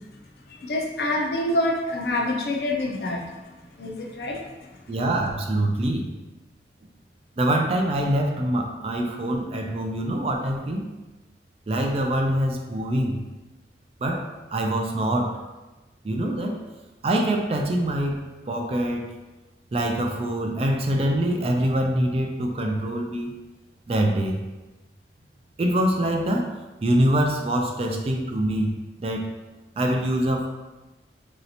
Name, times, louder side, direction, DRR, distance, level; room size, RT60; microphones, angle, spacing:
voice 1, 0.5-4.7, left 1 dB, 60° left, 0 dB, 0.5 m, -27 dB
voice 2, 4.9-6.1 7.4-10.9 11.7-13.2 14.0-15.3 16.0-16.6 17.0-19.1 19.7-23.3 23.9-24.4 25.6-26.5 26.8-28.7 29.0-29.3 29.8-30.5, right 1 dB, 35° right, 2 dB, 0.3 m, -24 dB
3.0 x 2.7 x 2.8 m, 1.1 s
head